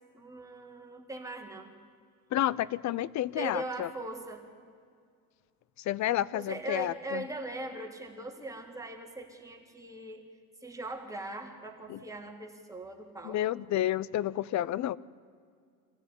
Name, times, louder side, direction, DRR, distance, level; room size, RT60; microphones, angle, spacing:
voice 1, 0.1-1.7 3.4-4.4 6.3-10.3 10.6-13.4, right 2 dB, 5° right, 1 dB, 3.6 m, -40 dB
voice 2, 2.3-3.9 5.9-7.2 11.9-12.0 13.2-15.0, left 13 dB, 35° left, 22 dB, 0.6 m, -30 dB
25.5 x 15.5 x 9.9 m, 2.2 s
hypercardioid pair, 85°, 48 cm